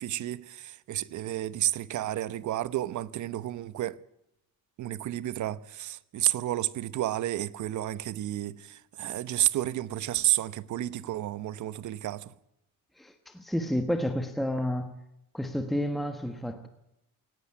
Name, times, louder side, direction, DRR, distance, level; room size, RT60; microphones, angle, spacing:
voice 1, 0.0-4.0 4.8-12.3, right 13 dB, 55° right, 0.9 m, -31 dB
voice 2, 13.0-14.9 15.3-16.7, equal, ahead, 1.3 m, -30 dB
18.5 x 17.0 x 9.7 m
cardioid pair, 175°, 35 cm